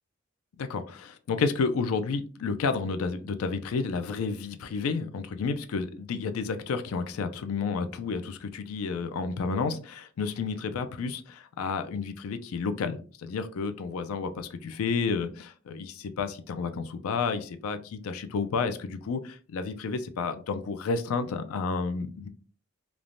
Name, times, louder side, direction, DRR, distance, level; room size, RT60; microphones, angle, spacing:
voice 1, 0.6-22.3, left 4 dB, 90° left, 9 dB, 0.4 m, -31 dB
3.2 x 2.1 x 2.5 m, 0.39 s
head